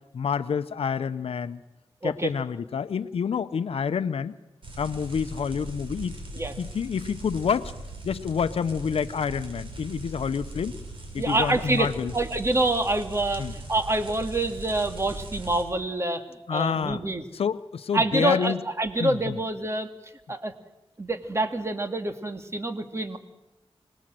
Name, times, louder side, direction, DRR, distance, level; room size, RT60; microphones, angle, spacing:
voice 1, 0.1-1.6 2.0-4.4 4.8-6.2 6.6-7.7 8.0-10.7 11.1-12.1 13.4-13.5 16.5-17.0 17.3-18.6 19.0-19.4, left 6 dB, 85° left, 11 dB, 0.8 m, -28 dB
sound 1, 4.6-15.6, right 2 dB, 65° right, 7.1 m, -39 dB
voice 2, 11.2-16.2 16.5-17.2 17.9-19.9 20.3-20.5 21.0-23.2, right 2 dB, 30° right, 6 dB, 2.3 m, -27 dB
25.5 x 20.0 x 7.7 m, 0.96 s
cardioid pair, 60°, 10 cm